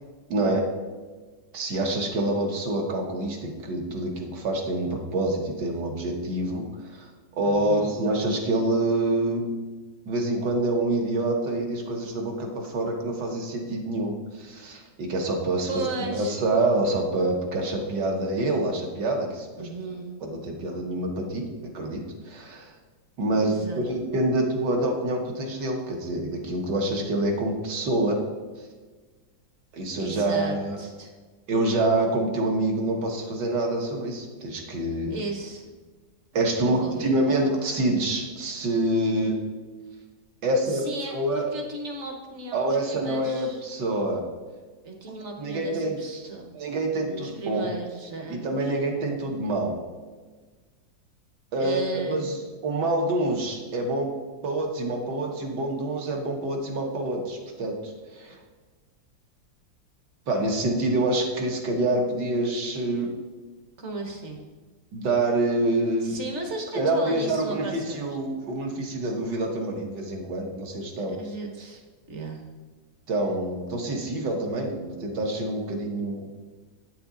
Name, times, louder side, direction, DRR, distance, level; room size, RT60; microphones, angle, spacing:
voice 1, 0.3-0.7 1.5-9.4 10.1-19.7 20.2-22.7 23.2-28.2 29.7-30.8 31.5-35.1 36.3-39.4 40.4-41.5 42.5-44.2 45.1-46.0 46.5-47.7 48.3-49.8 51.5-52.4 52.6-54.1 54.4-58.4 60.3-63.1 64.9-66.2 66.7-71.2 73.1-76.3, right 2 dB, 70° right, 1 dB, 1.7 m, -26 dB
voice 2, 7.4-7.9 15.7-16.4 19.6-20.1 23.4-23.8 30.0-31.1 35.1-35.7 36.6-37.2 40.7-43.6 44.8-46.5 47.0-48.8 51.6-52.2 63.8-64.4 66.0-68.2 71.0-71.8 72.1-72.4, right 3 dB, 45° right, 3 dB, 1.1 m, -35 dB
8.3 x 6.8 x 3.7 m, 1.4 s
omnidirectional pair, 2.0 m